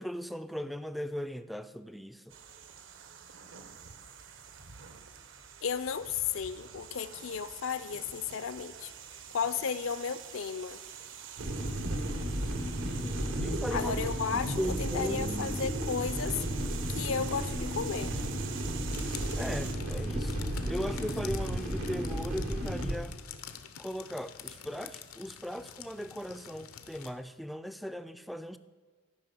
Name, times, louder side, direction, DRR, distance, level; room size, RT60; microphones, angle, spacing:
voice 1, 0.0-2.3 12.9-14.0 14.3-15.6 19.4-23.2 23.8-28.6, equal, ahead, 11 dB, 0.3 m, -38 dB
sound 1, 2.3-19.7, right 8 dB, 60° right, 0.8 m, -46 dB
voice 2, 5.6-8.9 9.3-10.8 13.7-16.4 16.9-18.1, left 6 dB, 65° left, 14 dB, 0.5 m, -34 dB
sound 2, 11.4-23.0, right 1 dB, 85° right, 1.7 m, -33 dB
sound 3, 18.9-27.1, left 8 dB, 90° left, 0.8 m, -47 dB
13.5 x 5.5 x 6.8 m, 1.5 s
head